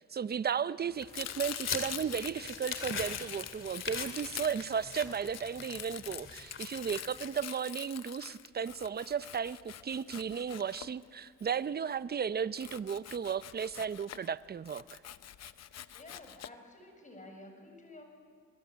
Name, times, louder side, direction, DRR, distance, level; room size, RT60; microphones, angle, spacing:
voice 1, 0.1-15.0, right 7 dB, 30° right, 16 dB, 0.7 m, -35 dB
sound 1, 0.9-7.2, left 5 dB, 40° left, 2.7 m, -42 dB
Domestic sounds home sounds, 1.1-11.4 12.6-14.3 14.7-16.5, left 11 dB, 60° left, 0.9 m, -44 dB
voice 2, 15.9-18.0, left 2 dB, 25° left, 4 dB, 7.0 m, -51 dB
27.5 x 21.5 x 8.7 m, 2.1 s
cardioid pair, 90°, 30 cm